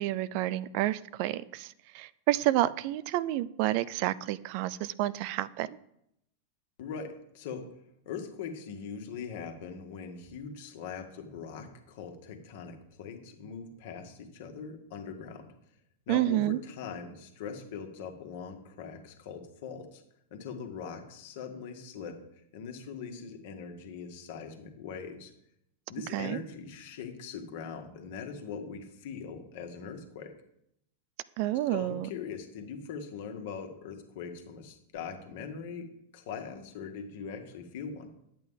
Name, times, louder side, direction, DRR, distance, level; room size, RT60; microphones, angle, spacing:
voice 1, 0.0-5.8 16.1-16.6 26.1-26.4 31.4-32.1, right 15 dB, 45° right, 17 dB, 0.4 m, -29 dB
voice 2, 6.8-7.7 8.0-15.5 16.1-20.0 20.3-22.2 22.5-25.3 25.9-30.3 31.7-35.9 36.1-38.1, left 6 dB, 50° left, 5 dB, 1.6 m, -41 dB
10.5 x 8.3 x 3.7 m, 0.76 s
figure-of-eight pair, 90°, 0 cm